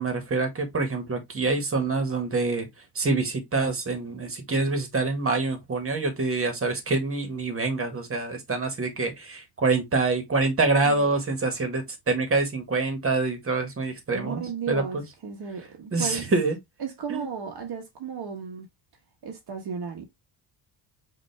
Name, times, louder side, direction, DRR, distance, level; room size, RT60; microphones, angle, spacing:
voice 1, 0.0-2.7 2.9-15.0 15.9-16.5 17.1-17.3, right 3 dB, 30° right, 1.7 m, -26 dB
voice 2, 14.1-16.3 16.8-18.7 19.2-20.1, right 6 dB, 50° right, 1.3 m, -35 dB
5.4 x 3.0 x 3.3 m
cardioid pair, 115°, 48 cm